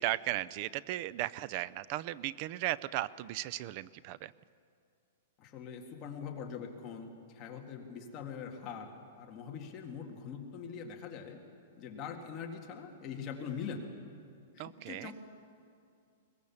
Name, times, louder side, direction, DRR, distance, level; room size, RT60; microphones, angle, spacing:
voice 1, 0.0-4.3 14.6-15.1, right 15 dB, 35° right, 20 dB, 0.4 m, -36 dB
voice 2, 5.4-8.9 9.2-11.4 11.8-13.9 14.6-15.1, left 6 dB, 20° left, 1 dB, 1.8 m, -43 dB
22.0 x 20.0 x 7.1 m, 2.4 s
supercardioid pair, 175°, 0 cm